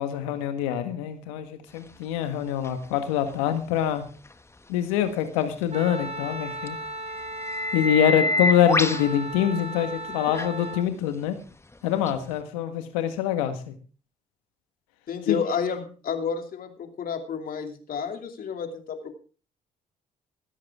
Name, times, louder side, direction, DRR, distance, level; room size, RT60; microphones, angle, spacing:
voice 1, 0.0-4.0 4.7-6.8 7.7-11.4 11.8-13.7 15.3-15.4, left 10 dB, 85° left, 8 dB, 1.7 m, -25 dB
sound 1, 2.6-2.7 6.7-6.8 7.2-9.1 10.3-10.5 12.1-12.2, left 2 dB, 15° left, 1.1 m, -26 dB
Wind instrument woodwind instrument, 5.7-10.9, right 1 dB, 40° right, 1.8 m, -36 dB
voice 2, 15.1-19.1, left 6 dB, 60° left, 5 dB, 2.7 m, -30 dB
16.0 x 13.0 x 3.6 m, 0.37 s
hypercardioid pair, 50°, 17 cm